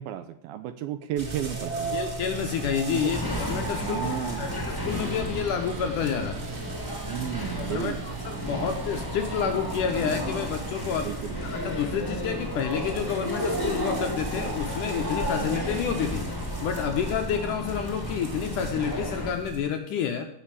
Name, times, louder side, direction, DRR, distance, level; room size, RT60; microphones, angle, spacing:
voice 1, 0.0-2.0 2.9-3.1 3.8-4.5 7.0-8.0 8.5-8.7 11.1-11.5 15.4-15.7, right 11 dB, 80° right, 11 dB, 2.3 m, -33 dB
sound 1, 1.2-19.6, right 3 dB, 25° right, 2.6 m, -36 dB
voice 2, 1.9-6.4 7.6-20.3, left 7 dB, 75° left, 5 dB, 2.0 m, -29 dB
sound 2, 3.1-19.3, left 1 dB, 10° left, 1.1 m, -34 dB
sound 3, 4.9-14.4, right 7 dB, 60° right, 2.8 m, -47 dB
16.5 x 6.1 x 8.5 m, 0.75 s
omnidirectional pair, 4.6 m